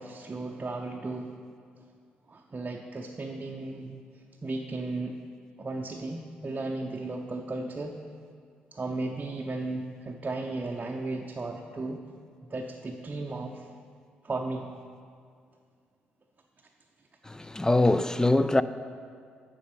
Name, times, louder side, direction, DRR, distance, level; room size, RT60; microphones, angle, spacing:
voice 1, 0.0-1.4 2.3-4.0 4.4-5.2 5.6-8.0 8.7-12.0 12.4-13.7 14.2-14.7, right 2 dB, 30° right, 0.6 m, -35 dB
voice 2, 17.2-18.6, left 2 dB, 15° left, 0.4 m, -23 dB
9.3 x 7.0 x 5.1 m
figure-of-eight pair, 40°, 5 cm